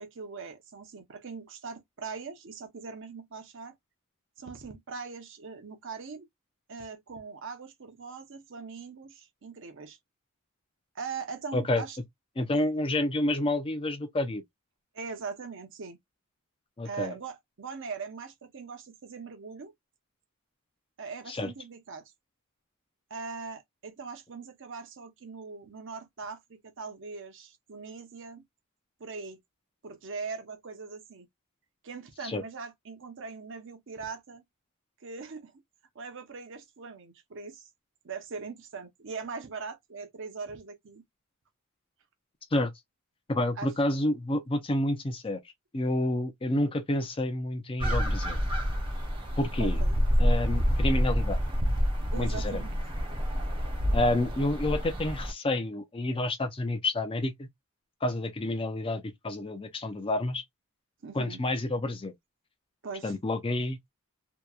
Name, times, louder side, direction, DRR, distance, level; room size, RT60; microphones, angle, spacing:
voice 1, 0.0-3.8 4.4-6.3 6.7-10.0 10.9-12.0 14.9-16.0 16.8-19.7 21.0-22.1 23.1-28.4 29.0-29.4 29.8-31.3 31.8-34.4 35.0-35.6 35.9-37.7 38.0-41.0 43.6-43.7 49.6-50.0 52.1-52.8 61.0-61.4 62.8-63.1, right 5 dB, 55° right, 0.7 m, -41 dB
voice 2, 11.5-11.8 12.4-14.4 16.8-17.1 21.3-21.5 32.2-32.4 42.5-42.7 43.3-45.4 45.7-48.4 49.4-49.8 50.2-51.4 52.2-52.6 53.9-57.5 58.0-60.4 61.1-62.1 63.0-63.8, left 1 dB, 25° left, 0.5 m, -29 dB
sound 1, 47.8-55.3, equal, 25° right, 0.6 m, -28 dB
2.8 x 2.2 x 2.3 m
head